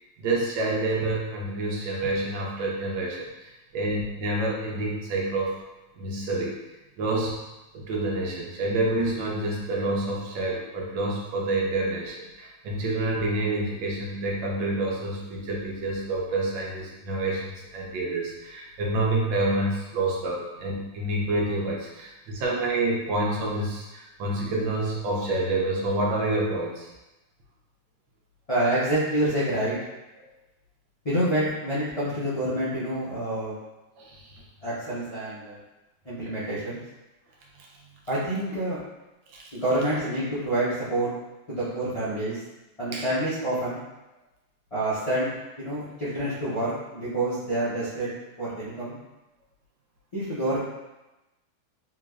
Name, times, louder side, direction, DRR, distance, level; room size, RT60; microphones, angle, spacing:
voice 1, 0.2-5.6 6.0-6.6 7.0-7.4 7.7-26.9 34.0-34.4 39.3-39.4 42.9-43.1, right 2 dB, 75° right, -3 dB, 1.4 m, -28 dB
voice 2, 28.5-29.8 31.0-33.6 34.6-35.6 36.0-36.8 38.1-38.8 39.5-41.1 41.5-42.4 42.8-43.8 44.7-48.1 48.4-49.0 50.1-50.6, right 1 dB, 40° left, -12 dB, 0.5 m, -27 dB
3.9 x 3.0 x 2.4 m, 1.0 s
omnidirectional pair, 2.1 m